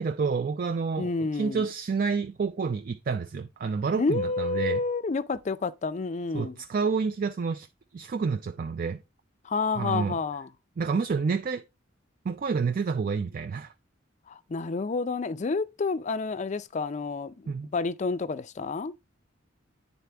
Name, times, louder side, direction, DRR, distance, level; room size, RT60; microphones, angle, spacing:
voice 1, 0.0-4.8 6.3-7.7 7.9-9.0 9.7-10.2 10.8-11.6 12.2-13.7 17.5-17.7, right 5 dB, 45° right, 0.4 m, -29 dB
voice 2, 1.0-1.6 4.0-6.6 9.4-10.5 14.3-18.9, left 4 dB, 35° left, 0.4 m, -29 dB
9.6 x 4.1 x 3.3 m
head